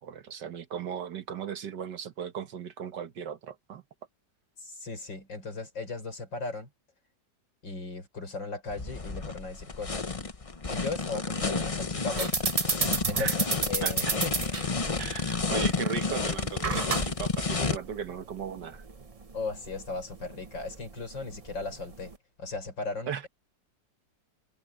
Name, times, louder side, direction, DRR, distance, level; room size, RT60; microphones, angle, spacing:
voice 1, 0.0-3.8 13.2-13.4 13.8-14.1 15.0-18.8 23.1-23.3, right 8 dB, 70° right, 1.8 m, -37 dB
voice 2, 4.6-6.7 7.6-10.1 10.7-12.3 13.1-14.3 19.3-22.1 22.4-23.3, left 3 dB, 85° left, 5.9 m, -37 dB
sound 1, 8.7-17.8, left 4 dB, 25° left, 0.7 m, -31 dB
sound 2, 12.1-22.2, right 4 dB, 35° right, 0.6 m, -33 dB
omnidirectional pair, 2.0 m